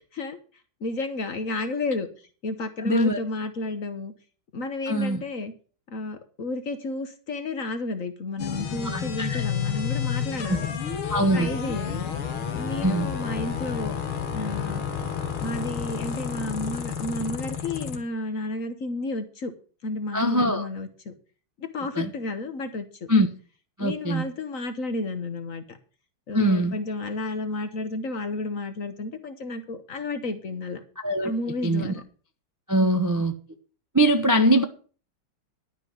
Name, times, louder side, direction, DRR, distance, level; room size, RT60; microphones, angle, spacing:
voice 1, 0.8-2.1 2.4-4.1 4.5-5.5 5.9-10.7 11.3-12.1 12.5-14.0 14.3-14.8 15.4-19.5 19.8-21.1 21.6-22.9 23.8-25.8 26.3-30.8 31.2-32.0 32.8-33.2, left 2 dB, 45° left, 1.3 m, -32 dB
voice 2, 2.8-3.2 4.9-5.2 8.8-9.4 10.5-10.6 11.1-11.5 12.8-13.1 20.1-20.7 21.9-22.1 23.1-23.3 23.8-24.2 26.3-26.7 31.0-31.3 31.6-31.9 32.7-33.3 33.9-34.6, right 1 dB, 20° right, 0.4 m, -22 dB
sound 1, 8.4-18.0, left 7 dB, 90° left, 2.4 m, -30 dB
12.0 x 5.6 x 7.9 m
omnidirectional pair, 2.3 m